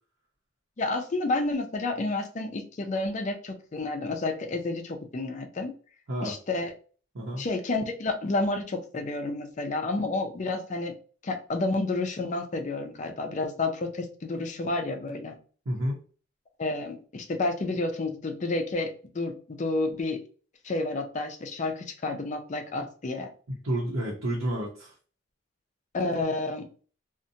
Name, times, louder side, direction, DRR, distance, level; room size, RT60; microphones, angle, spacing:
voice 1, 0.8-5.7 6.2-6.7 7.4-10.9 11.2-15.4 16.6-20.2 20.6-23.3 25.9-26.7, left 2 dB, 35° left, 5 dB, 0.4 m, -30 dB
voice 2, 7.1-7.5 15.7-16.0 23.5-24.9, right 1 dB, 85° right, -4 dB, 0.7 m, -30 dB
2.7 x 2.1 x 2.6 m, 0.40 s
head